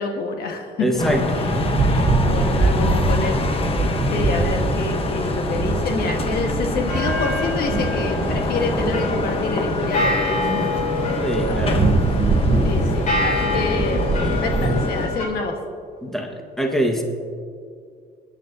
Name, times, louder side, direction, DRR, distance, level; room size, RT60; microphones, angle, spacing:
voice 1, 0.0-1.1 1.3-3.4 3.8-10.6 10.9-11.1 11.5-11.9 12.2-12.3 12.6-15.6, left 3 dB, 70° left, 3 dB, 1.4 m, -27 dB
voice 2, 0.8-1.2 11.2-11.8 14.2-14.4 14.7-14.8 16.0-17.0, right 1 dB, ahead, 2 dB, 1.4 m, -24 dB
sound 1, 0.9-14.8, right 3 dB, 40° right, 1.2 m, -24 dB
sound 2, 1.0-15.1, left 3 dB, 35° left, 1.1 m, -26 dB
sound 3, 6.9-15.3, left 2 dB, 50° left, 3.6 m, -27 dB
25.0 x 9.7 x 2.7 m, 2.3 s
cardioid pair, 110°, 17 cm